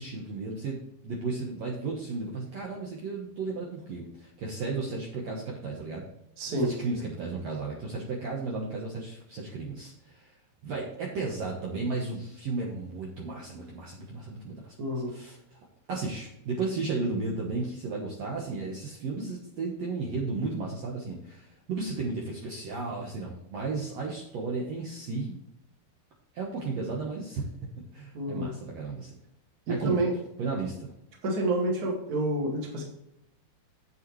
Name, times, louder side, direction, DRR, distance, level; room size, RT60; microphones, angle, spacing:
voice 1, 0.0-6.1 6.6-10.3 10.6-14.8 15.1-15.6 15.9-25.4 26.3-27.4 27.8-29.1 29.7-30.0 30.4-30.9, right 3 dB, 80° right, -3 dB, 1.4 m, -34 dB
voice 2, 6.4-6.7 14.8-15.1 28.1-28.5 29.7-30.1 31.2-32.8, right 1 dB, 40° right, -1 dB, 1.3 m, -28 dB
8.8 x 8.0 x 3.1 m, 0.84 s
omnidirectional pair, 4.7 m